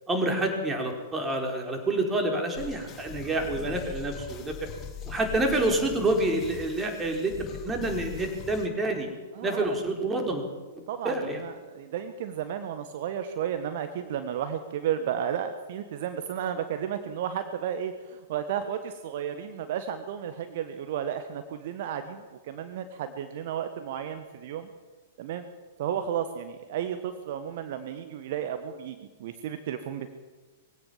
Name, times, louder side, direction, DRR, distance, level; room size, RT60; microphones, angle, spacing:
voice 1, 0.1-4.5 5.1-7.4 7.6-9.1 9.4-10.4 11.0-11.4, right 2 dB, 15° right, 3 dB, 4.6 m, -28 dB
sound 1, 2.5-8.7, left 7 dB, 25° left, 3.0 m, -41 dB
voice 2, 9.3-9.8 10.9-24.7 25.2-25.4 25.8-30.1, right 9 dB, 50° right, 9 dB, 1.4 m, -33 dB
22.0 x 16.5 x 7.3 m, 1.3 s
figure-of-eight pair, 105°, 0 cm